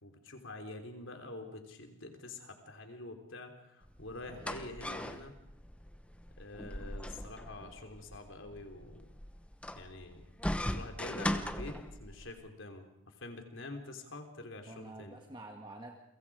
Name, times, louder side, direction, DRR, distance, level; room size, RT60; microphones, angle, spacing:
voice 1, 0.0-5.3 6.4-9.1 9.7-10.2 10.7-15.2, left 2 dB, 70° left, 5 dB, 3.5 m, -46 dB
sound 1, 3.8-12.3, left 1 dB, 5° left, 1.0 m, -40 dB
voice 2, 4.3-5.2 14.7-16.0, right 2 dB, 20° right, 2 dB, 1.6 m, -50 dB
30.0 x 24.0 x 4.9 m, 0.81 s
head